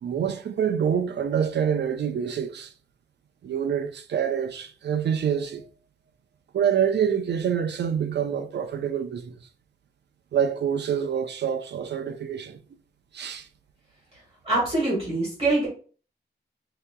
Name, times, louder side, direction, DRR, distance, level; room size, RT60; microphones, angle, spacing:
voice 1, 0.0-2.7 3.4-5.6 6.5-9.4 10.3-12.6 13.1-13.5, right 8 dB, 80° right, 0.5 m, -26 dB
voice 2, 14.4-15.7, right 2 dB, 35° right, 1.9 m, -24 dB
5.6 x 2.8 x 2.2 m
wide cardioid pair, 170°, 18 cm